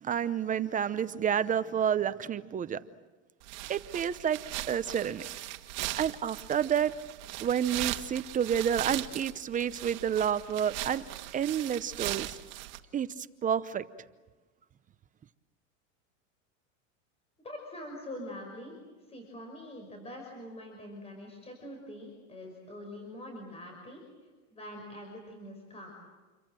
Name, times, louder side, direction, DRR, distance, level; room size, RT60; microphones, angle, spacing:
voice 1, 0.0-2.8 3.7-4.4 4.7-5.2 6.0-6.9 7.4-11.0 11.3-12.4 12.9-13.8, right 8 dB, 20° right, 14 dB, 0.7 m, -29 dB
sound 1, 3.4-12.8, right 16 dB, 60° right, 1.8 m, -39 dB
voice 2, 17.4-18.7 19.1-24.0 24.5-25.9, left 1 dB, 15° left, 1 dB, 5.8 m, -44 dB
28.0 x 23.5 x 7.7 m, 1.2 s
supercardioid pair, 135°, 40 cm